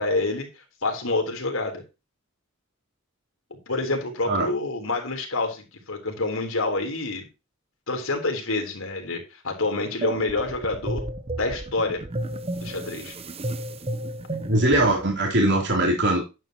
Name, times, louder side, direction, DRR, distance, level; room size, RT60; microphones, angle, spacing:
voice 1, 0.0-1.8 3.7-7.2 7.9-11.0 11.4-12.0 12.6-13.2, left 2 dB, 85° left, 3 dB, 3.8 m, -27 dB
sound 1, 10.0-15.2, right 2 dB, 30° right, 0.9 m, -32 dB
voice 2, 14.4-16.3, right 1 dB, 55° right, -1 dB, 3.9 m, -21 dB
11.0 x 9.3 x 3.0 m, 0.28 s
head